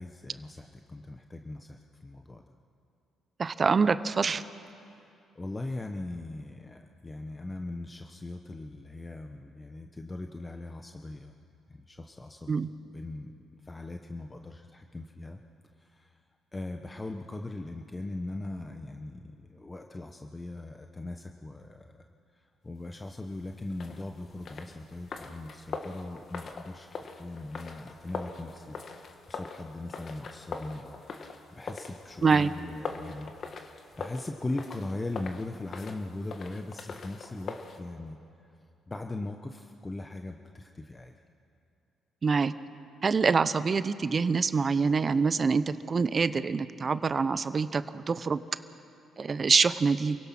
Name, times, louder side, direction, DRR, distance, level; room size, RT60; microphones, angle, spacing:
voice 1, 0.0-2.4 4.8-5.1 5.3-11.4 11.7-12.5 12.9-15.4 15.8-16.1 16.5-22.0 22.6-28.8 29.3-33.3 33.7-38.2 38.9-41.1, left 2 dB, 25° left, 4 dB, 1.1 m, -40 dB
voice 2, 3.4-4.4 12.5-12.7 32.2-32.5 42.2-42.5 43.0-48.4 49.2-50.2, right 5 dB, 40° right, 14 dB, 0.8 m, -25 dB
sound 1, 23.7-37.8, left 4 dB, 55° left, 1.6 m, -42 dB
28.0 x 16.5 x 6.1 m, 2.5 s
supercardioid pair, 70°, 0 cm